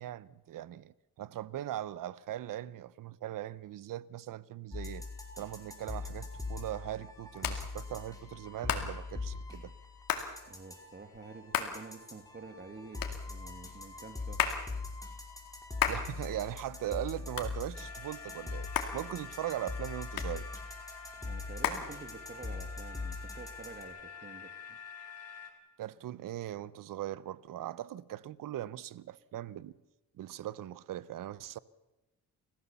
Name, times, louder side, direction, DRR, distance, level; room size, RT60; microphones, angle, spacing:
voice 1, 0.0-5.0 5.4-9.7 15.9-20.5 25.8-29.7 30.2-31.6, right 12 dB, 70° right, 0.9 m, -40 dB
sound 1, 4.7-23.8, left 3 dB, 10° left, 5.1 m, -42 dB
Hands, 5.9-22.6, left 9 dB, 80° left, 2.4 m, -38 dB
voice 2, 10.5-14.5 21.2-24.8, right 4 dB, 30° right, 2.1 m, -49 dB
sound 2, 17.7-25.5, left 5 dB, 45° left, 3.8 m, -48 dB
29.0 x 15.5 x 7.1 m
cardioid pair, 85°, 34 cm